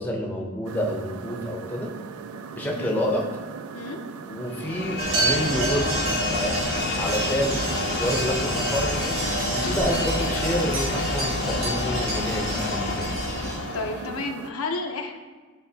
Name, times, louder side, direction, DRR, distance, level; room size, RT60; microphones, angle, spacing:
voice 1, 0.0-1.9 2.5-3.2 4.3-6.5 7.0-13.1, equal, 10° left, -1 dB, 0.6 m, -29 dB
sound 1, 0.6-14.5, right 6 dB, 90° right, 0.3 m, -39 dB
sound 2, 4.5-14.3, left 5 dB, 50° left, 0.3 m, -30 dB
sound 3, 5.0-13.6, right 2 dB, 70° right, 1.4 m, -28 dB
voice 2, 13.7-15.2, left 3 dB, 90° left, 4 dB, 0.7 m, -31 dB
10.5 x 3.6 x 2.8 m, 1.4 s
head